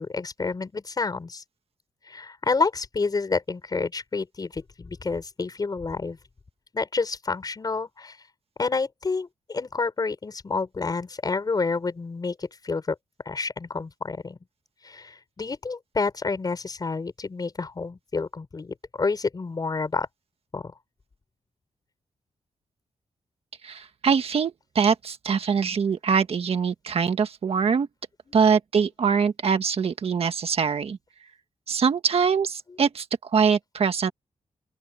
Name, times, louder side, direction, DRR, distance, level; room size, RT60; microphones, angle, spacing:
voice 1, 0.0-1.4 2.1-6.2 6.7-8.2 8.6-13.0 13.3-14.4 14.8-20.1 20.5-20.7, left 4 dB, 35° left, 5.1 m, -29 dB
voice 2, 23.6-27.9 28.3-31.0 31.7-34.1, right 6 dB, 55° right, 1.6 m, -23 dB
open air
wide cardioid pair, 135°, 12 cm